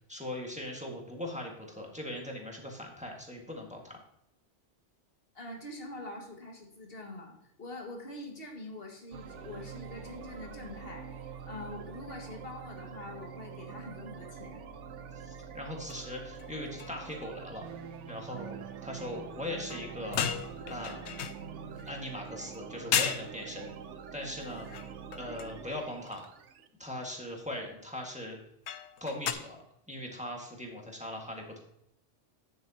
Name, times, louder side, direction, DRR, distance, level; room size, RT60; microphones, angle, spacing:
voice 1, 0.1-4.0 15.1-17.6 18.1-20.3 20.7-21.0 21.8-23.7 24.1-24.7 25.1-26.2 26.8-28.4 29.0-31.6, left 1 dB, 5° right, 0 dB, 1.6 m, -40 dB
voice 2, 5.4-14.7, left 2 dB, 50° left, 1 dB, 2.0 m, -44 dB
sound 1, 9.1-26.7, right 7 dB, 75° right, 1.0 m, -45 dB
Wind instrument woodwind instrument, 9.2-17.8, right 4 dB, 50° right, 1.7 m, -54 dB
sound 2, 15.9-16.1 16.4-16.5 16.8-17.2 19.7-22.0 22.5-22.6 22.9-23.3 24.4-25.6 26.1-26.3 28.7-29.3, left 8 dB, 70° left, 0.9 m, -35 dB
9.5 x 7.8 x 2.8 m, 0.78 s
omnidirectional pair, 1.3 m